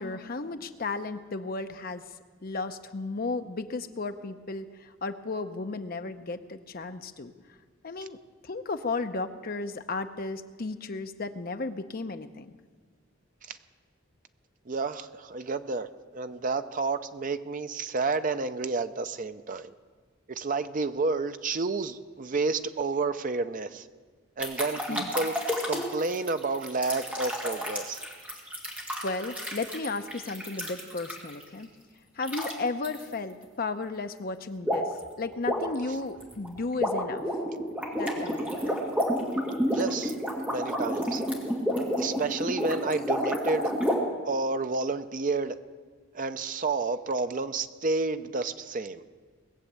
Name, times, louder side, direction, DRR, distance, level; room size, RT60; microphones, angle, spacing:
voice 1, 0.0-2.0 2.4-7.3 7.8-8.2 8.4-12.6 24.9-25.1 29.0-31.7 32.2-34.9 35.2-37.2 37.9-38.8, left 3 dB, 45° left, 8 dB, 0.7 m, -34 dB
voice 2, 14.7-15.9 16.1-19.7 20.3-23.9 24.4-25.4 25.7-28.0 39.7-40.1 40.5-41.2 42.0-43.7 44.2-45.6 46.1-49.0, right 3 dB, 40° right, 10 dB, 0.6 m, -30 dB
sound 1, 24.4-31.4 32.2-32.5 32.8-33.0 34.6-35.0 35.3-44.0, equal, 5° right, 2.1 m, -30 dB
20.0 x 7.3 x 8.0 m, 1.5 s
head